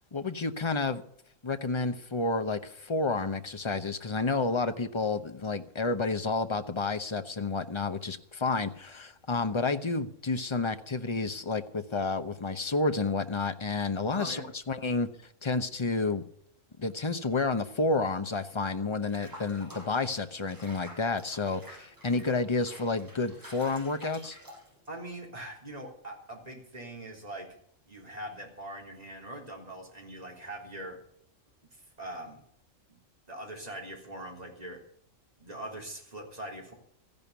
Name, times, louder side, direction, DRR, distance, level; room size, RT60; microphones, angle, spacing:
voice 1, 0.1-1.0 1.4-15.1 15.4-16.2 16.8-24.4, left 3 dB, 25° left, 9 dB, 0.8 m, -30 dB
voice 2, 14.1-14.5 24.9-27.5 27.9-31.0 31.7-32.4 32.9-33.0 33.3-34.8 35.4-36.7, right 1 dB, 30° right, -1 dB, 3.7 m, -42 dB
Water / Bathtub (filling or washing), 19.1-25.0, equal, 15° right, 6.1 m, -50 dB
14.5 x 10.5 x 7.0 m, 0.68 s
omnidirectional pair, 1.3 m